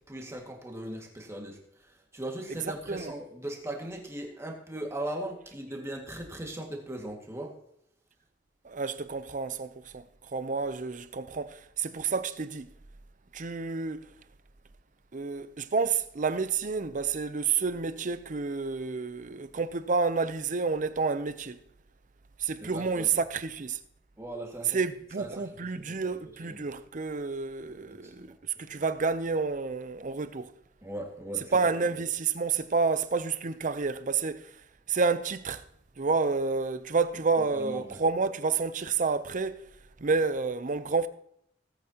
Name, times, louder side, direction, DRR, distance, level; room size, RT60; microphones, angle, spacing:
voice 1, 0.1-7.5 22.6-23.1 24.2-24.8 25.2-25.3 25.7-26.2 26.4-26.6 28.0-28.3 28.7-28.8 30.8-31.6 31.9-32.0 37.5-38.0, right 1 dB, 15° right, 2.0 m, -39 dB
voice 2, 8.6-12.7 13.3-14.1 15.1-21.6 22.4-23.8 24.7-30.5 31.5-34.5 34.9-35.6 36.0-39.6 40.0-41.1, right 4 dB, 45° right, 0.6 m, -29 dB
18.5 x 8.7 x 2.9 m
head